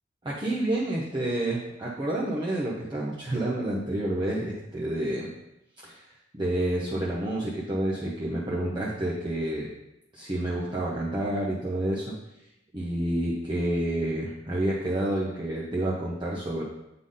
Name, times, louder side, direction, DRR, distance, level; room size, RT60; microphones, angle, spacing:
voice 1, 0.2-5.3 5.8-6.0 6.3-9.7 10.1-12.1 12.7-16.6, right 1 dB, 25° right, -6 dB, 0.8 m, -29 dB
7.9 x 3.8 x 3.8 m, 0.87 s
head